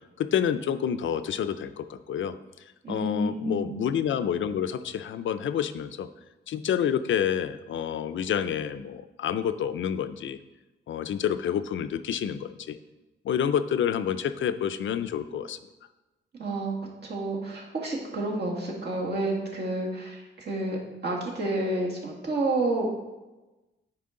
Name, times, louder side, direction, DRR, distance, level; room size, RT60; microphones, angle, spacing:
voice 1, 0.2-2.3 2.9-6.1 6.5-10.4 10.9-12.8 13.2-15.6, left 8 dB, 80° left, 11 dB, 0.4 m, -28 dB
voice 2, 2.8-3.8 16.4-16.8 17.0-22.9, right 2 dB, 60° right, -2 dB, 1.8 m, -30 dB
9.4 x 4.7 x 3.7 m, 1.1 s
wide cardioid pair, 140°, 20 cm